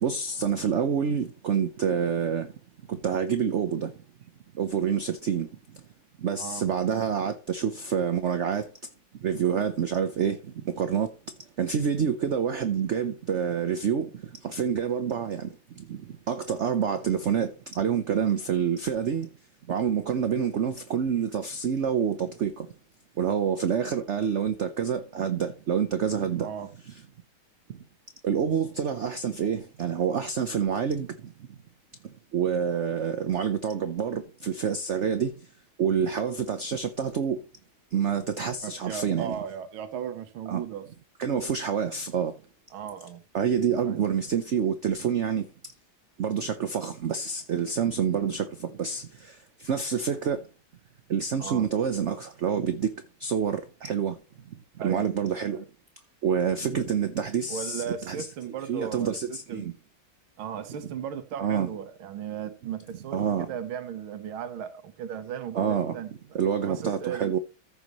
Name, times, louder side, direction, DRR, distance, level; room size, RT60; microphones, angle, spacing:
voice 1, 0.0-2.5 2.9-3.9 4.6-5.5 6.2-8.7 9.2-10.4 10.6-11.1 11.6-15.5 15.8-16.0 16.3-19.3 19.7-22.7 23.2-26.5 28.2-31.1 32.3-35.3 35.8-37.4 37.9-39.4 40.5-40.6 41.2-42.3 43.3-45.5 46.2-49.3 49.6-50.4 51.1-52.9 53.2-54.2 54.8-55.6 56.2-58.3 58.7-59.7 61.4-61.7 63.1-63.5 65.5-66.0 66.3-67.4, right 7 dB, 60° right, 0.7 m, -27 dB
voice 2, 38.6-40.9 42.7-43.2 43.8-44.0 51.4-51.7 54.8-55.1 57.5-59.7 60.4-63.2 63.5-66.4 66.6-67.4, right 8 dB, 85° right, 1.8 m, -36 dB
14.5 x 6.9 x 3.1 m
omnidirectional pair, 2.2 m